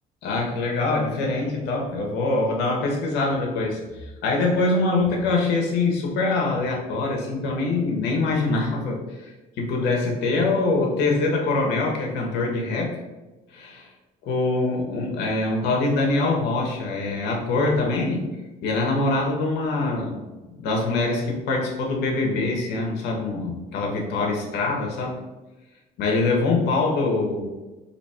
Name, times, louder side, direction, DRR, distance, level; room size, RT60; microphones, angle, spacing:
voice 1, 0.2-12.9 13.5-13.9 14.2-18.2 18.6-20.2 20.6-25.2 26.0-27.4, left 3 dB, 85° left, 0 dB, 0.7 m, -24 dB
2.8 x 2.2 x 4.1 m, 1.1 s
cardioid pair, 110°, 17 cm